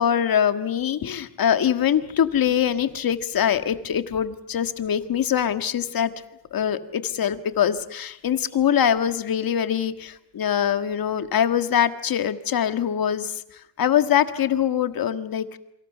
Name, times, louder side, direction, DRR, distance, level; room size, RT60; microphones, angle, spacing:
voice 1, 0.0-6.1 6.5-15.6, left 9 dB, 55° left, 10 dB, 1.8 m, -23 dB
27.5 x 24.5 x 6.8 m, 0.76 s
cardioid pair, 115°, 42 cm